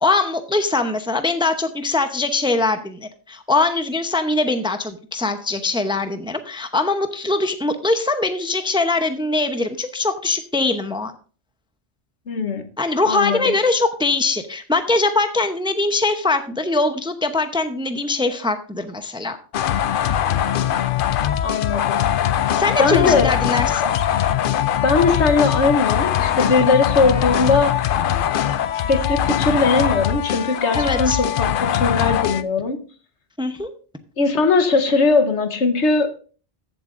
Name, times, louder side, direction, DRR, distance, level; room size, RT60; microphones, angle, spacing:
voice 1, 0.0-11.1 12.8-19.4 22.5-23.9 30.7-31.2 33.4-33.7, left 3 dB, 5° right, 0.6 m, -22 dB
voice 2, 12.3-12.7 13.0-13.5 21.4-22.3 22.8-23.3 24.8-27.8 28.7-32.8 34.2-36.1, left 4 dB, 80° left, 1.4 m, -19 dB
sound 1, 19.5-32.4, left 10 dB, 60° left, 0.6 m, -21 dB
14.5 x 7.5 x 2.5 m
omnidirectional pair, 1.2 m